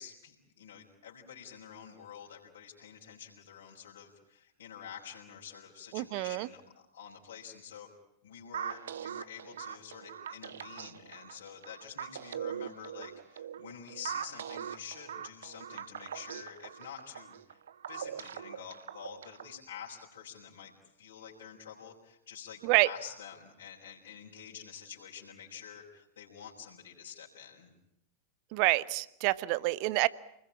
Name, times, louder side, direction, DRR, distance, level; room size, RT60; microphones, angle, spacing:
voice 1, 0.0-6.6 6.9-7.9 8.2-17.6 17.9-20.7 21.0-27.7, left 8 dB, 60° left, -5 dB, 5.6 m, -48 dB
voice 2, 5.9-6.5 22.6-22.9 28.5-30.1, right 21 dB, 45° right, 18 dB, 1.0 m, -27 dB
sound 1, 8.5-19.6, right 9 dB, 65° right, 1.0 m, -41 dB
29.0 x 21.0 x 8.8 m, 0.81 s
figure-of-eight pair, 90°, 0 cm